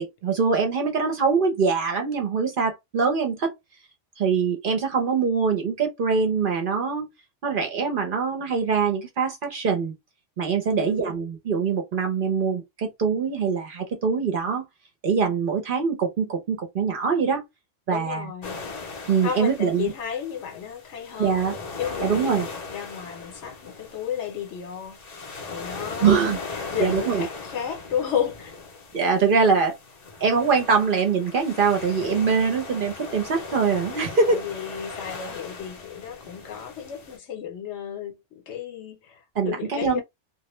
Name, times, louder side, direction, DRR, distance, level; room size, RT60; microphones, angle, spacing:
voice 1, 0.0-3.5 4.2-7.1 7.4-9.9 10.4-14.7 15.0-17.4 17.9-18.3 19.1-19.9 21.2-21.6 22.0-22.5 26.0-26.4 26.8-27.3 28.9-29.8 30.2-34.4 39.4-40.0, right 5 dB, 55° right, 0.7 m, -23 dB
voice 2, 10.7-11.1 17.9-18.6 19.2-21.4 21.8-25.0 25.5-26.2 26.7-28.6 34.3-40.0, left 8 dB, 70° left, 1.0 m, -33 dB
sound 1, 18.4-37.2, left 4 dB, 45° left, 0.6 m, -38 dB
2.2 x 2.1 x 2.9 m
omnidirectional pair, 1.2 m